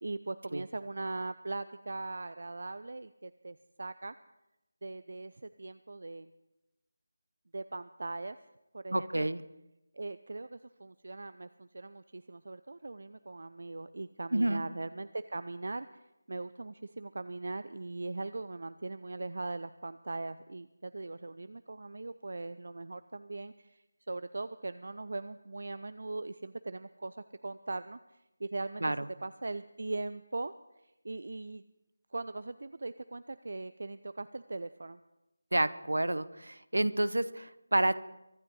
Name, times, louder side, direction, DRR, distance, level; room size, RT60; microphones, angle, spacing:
voice 1, 0.0-4.2 4.8-6.3 7.5-8.4 8.7-9.3 9.9-28.8 29.2-30.5 30.8-31.6 32.1-35.0, right 2 dB, 55° right, 13 dB, 0.5 m, -40 dB
voice 2, 8.9-9.4 14.3-14.6 28.8-29.1 35.5-37.9, right 1 dB, 70° right, 15 dB, 0.8 m, -29 dB
24.0 x 12.5 x 4.0 m, 0.93 s
figure-of-eight pair, 160°, 0 cm